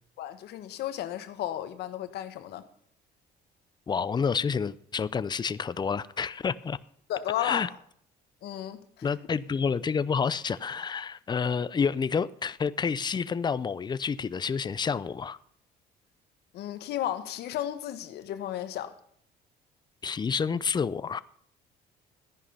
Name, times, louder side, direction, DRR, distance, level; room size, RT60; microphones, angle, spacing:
voice 1, 0.2-2.7 7.1-7.7 8.4-9.1 16.5-19.0, left 12 dB, 75° left, 1.4 m, -33 dB
voice 2, 3.9-6.8 7.4-7.7 9.0-15.4 20.0-21.2, left 6 dB, 25° left, 0.6 m, -29 dB
14.5 x 10.5 x 5.7 m
cardioid pair, 110°, 17 cm